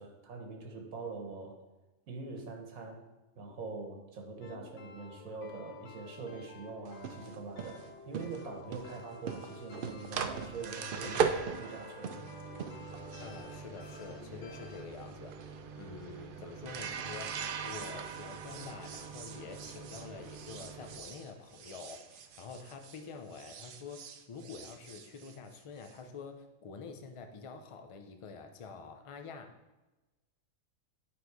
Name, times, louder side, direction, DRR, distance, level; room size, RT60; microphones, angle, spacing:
voice 1, 0.0-1.6 2.1-3.0 3.4-12.1, right 3 dB, 90° right, 2 dB, 1.5 m, -43 dB
sound 1, 4.4-14.8, left 5 dB, 70° left, 1.0 m, -53 dB
sound 2, 6.9-23.1 23.3-25.9, right 6 dB, 65° right, 0.5 m, -40 dB
voice 2, 11.0-11.4 13.2-15.4 15.8-29.6, left 5 dB, 50° left, 6 dB, 0.4 m, -47 dB
8.5 x 4.1 x 4.7 m, 1.1 s
omnidirectional pair, 1.4 m